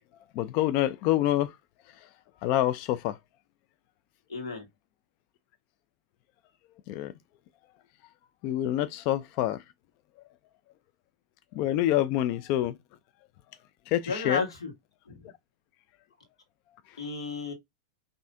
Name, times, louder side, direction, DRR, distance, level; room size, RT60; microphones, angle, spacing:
voice 1, 0.3-1.6 1.9-2.1 2.4-3.2 6.9-7.1 8.4-9.6 11.5-12.8 13.9-14.4 16.9-17.0, left 13 dB, 50° left, 0.3 m, -27 dB
voice 2, 4.3-4.7 14.1-14.7 15.1-15.2 17.0-17.5, left 4 dB, 90° left, 1.3 m, -32 dB
5.4 x 2.6 x 2.5 m
hypercardioid pair, 105°, 3 cm